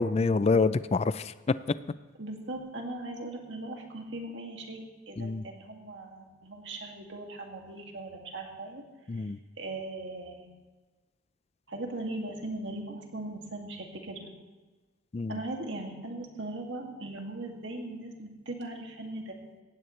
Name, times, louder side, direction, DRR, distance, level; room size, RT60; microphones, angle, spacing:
voice 1, 0.0-1.3 5.2-5.4 9.1-9.4 15.1-15.4, left 4 dB, 30° left, 15 dB, 0.3 m, -26 dB
voice 2, 2.2-8.8 9.2-9.3 9.6-10.5 11.7-14.3 15.3-19.4, right 2 dB, 60° right, 2 dB, 2.2 m, -39 dB
17.5 x 15.5 x 3.2 m, 1.2 s
head